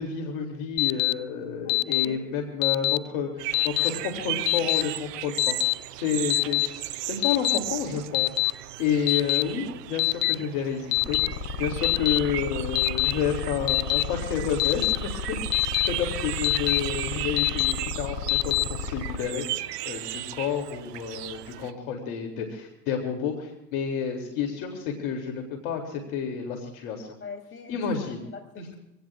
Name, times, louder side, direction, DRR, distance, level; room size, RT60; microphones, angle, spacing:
voice 1, 0.0-5.6 6.0-11.2 11.6-15.4 15.9-19.5 19.8-27.1 27.7-28.2 28.6-28.7, left 7 dB, 65° left, 3 dB, 2.9 m, -30 dB
Alarm, 0.8-1.1 1.7-2.1 2.6-3.0 3.5-3.9 4.5-4.8 5.4-5.7 6.3-6.7 7.2-7.6 8.1-8.5 9.1-9.4 10.0-10.3 10.9-11.3 11.8-12.2 12.8-13.1 13.7-14.0 14.6-15.0 15.5-15.9 16.4-16.8 17.4-17.7 18.3-18.6, left 25 dB, 80° left, 0.6 m, -23 dB
voice 2, 1.6-2.2 6.4-6.6 27.2-27.9 28.2-28.8, left 4 dB, 25° left, 4 dB, 5.4 m, -42 dB
sound 1, 3.4-21.7, right 14 dB, 75° right, 0.9 m, -36 dB
sound 2, 11.0-19.2, left 4 dB, 40° left, 2.8 m, -34 dB
25.5 x 18.0 x 2.4 m, 0.90 s
hypercardioid pair, 95°, 48 cm